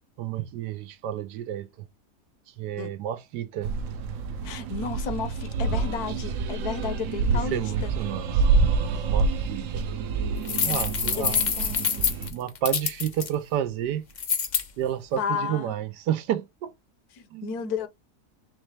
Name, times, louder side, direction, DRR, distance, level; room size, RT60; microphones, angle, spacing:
voice 1, 0.2-1.7 2.6-3.7 7.3-8.4 9.1-9.8 10.6-11.4 12.3-14.1 14.8-16.7 17.3-17.5, right 10 dB, 90° right, 1.3 m, -30 dB
sound 1, 3.6-12.3, right 4 dB, 70° right, 0.8 m, -27 dB
voice 2, 4.4-7.9 11.1-12.1 15.2-15.7 17.1-17.9, left 6 dB, 70° left, 1.2 m, -33 dB
sound 2, 10.4-13.3 14.2-14.6, left 6 dB, 85° left, 0.4 m, -26 dB
4.0 x 3.2 x 3.1 m
omnidirectional pair, 1.7 m